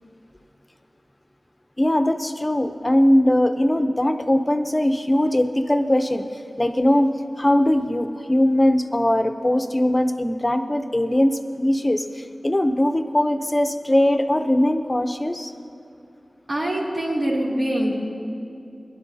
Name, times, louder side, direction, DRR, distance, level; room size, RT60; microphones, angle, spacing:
voice 1, 1.8-6.2 6.6-7.1 7.4-15.5, left 1 dB, 20° left, 8 dB, 0.6 m, -20 dB
voice 2, 16.5-17.9, right 1 dB, 65° right, -6 dB, 3.2 m, -24 dB
20.5 x 11.5 x 2.8 m, 2.6 s
wide cardioid pair, 65°, 0 cm